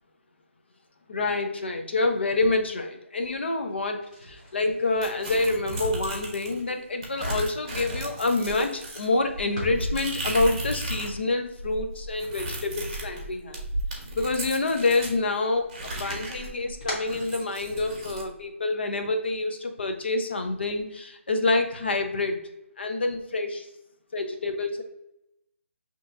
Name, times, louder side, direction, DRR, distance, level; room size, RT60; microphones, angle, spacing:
voice 1, 1.1-13.6 13.9-22.4 22.8-23.7 24.1-24.8, left 2 dB, 55° left, 5 dB, 0.7 m, -27 dB
sound 1, 3.9-13.9 14.2-15.1 15.4-18.1, left 1 dB, 30° left, 1.4 m, -44 dB
sound 2, 5.0-6.6 7.0-11.2 11.4-15.2 15.7-18.3, right 1 dB, 25° right, 1.0 m, -34 dB
6.6 x 3.0 x 2.6 m, 0.86 s
hypercardioid pair, 175°, 7 cm